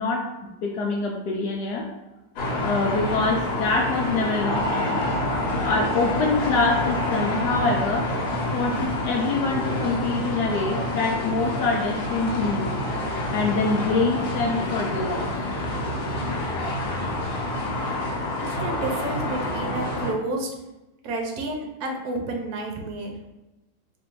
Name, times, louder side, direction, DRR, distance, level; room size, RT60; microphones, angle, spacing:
voice 1, 0.0-1.9 2.6-5.0 5.6-8.1 8.5-12.7 13.3-15.4, left 3 dB, 75° left, 0 dB, 0.9 m, -25 dB
sound 1, 2.4-20.1, left 1 dB, 55° left, 1.2 m, -27 dB
voice 2, 18.4-20.5 21.0-23.1, right 2 dB, 65° right, 2 dB, 1.0 m, -30 dB
3.2 x 2.6 x 4.5 m, 1.0 s
omnidirectional pair, 2.3 m